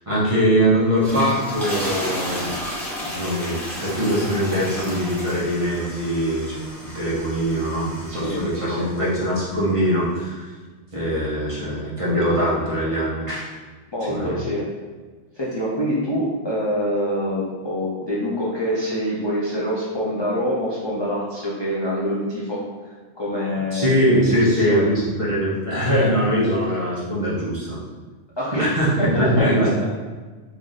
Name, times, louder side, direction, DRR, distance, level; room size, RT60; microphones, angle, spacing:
voice 1, 0.1-2.5 3.1-10.5 10.9-13.5 14.1-14.4 23.7-27.8 28.6-29.7, equal, 35° right, -7 dB, 0.6 m, -22 dB
sound 1, 0.8-9.2, equal, ahead, 0.8 m, -32 dB
voice 2, 8.1-8.9 13.9-14.6 15.4-24.9 28.4-28.7 29.0-29.8, equal, 45° left, -7 dB, 0.3 m, -25 dB
3.1 x 2.5 x 3.8 m, 1.4 s
omnidirectional pair, 1.3 m